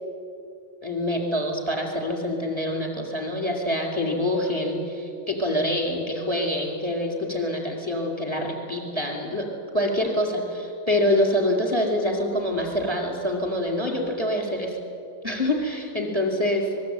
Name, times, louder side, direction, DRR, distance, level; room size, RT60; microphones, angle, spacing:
voice 1, 0.8-9.5 9.7-14.8 15.2-16.7, left 1 dB, 10° right, 1 dB, 4.5 m, -26 dB
25.0 x 21.5 x 9.6 m, 2.7 s
omnidirectional pair, 3.7 m